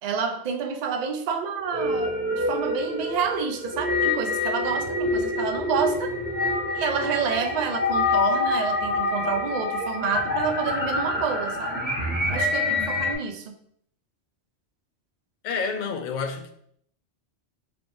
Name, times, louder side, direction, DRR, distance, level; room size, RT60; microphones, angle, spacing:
voice 1, 0.0-6.1 6.7-11.8 12.3-13.6, right 6 dB, 60° right, 0.4 m, -29 dB
sound 1, 1.6-13.1, left 2 dB, 10° right, 1.1 m, -26 dB
voice 2, 15.4-16.6, left 5 dB, 55° left, 0.5 m, -29 dB
4.9 x 3.1 x 2.6 m
omnidirectional pair, 1.1 m